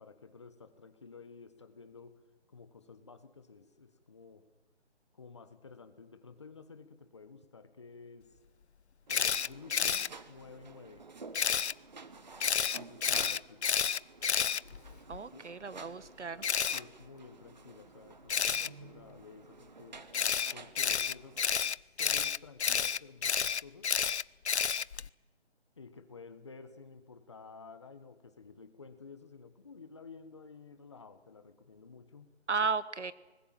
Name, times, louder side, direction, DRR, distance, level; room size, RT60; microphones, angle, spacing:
voice 1, 0.0-2.2 2.5-4.5 5.1-8.3 9.1-11.1 12.7-13.7 15.3-15.5 16.7-20.0 20.5-21.4 22.0-23.9 25.8-32.3, left 4 dB, 25° left, 10 dB, 1.3 m, -52 dB
Camera, 9.1-10.1 11.3-11.7 12.4-15.2 16.4-16.8 18.3-18.7 20.1-25.1, left 7 dB, 70° left, 0.6 m, -30 dB
sound 1, 9.1-21.7, right 4 dB, 40° right, 1.3 m, -52 dB
voice 2, 15.1-16.4 32.5-33.1, right 4 dB, 80° right, 16 dB, 1.5 m, -34 dB
24.5 x 20.5 x 7.6 m, 1.2 s
hypercardioid pair, 175°, 34 cm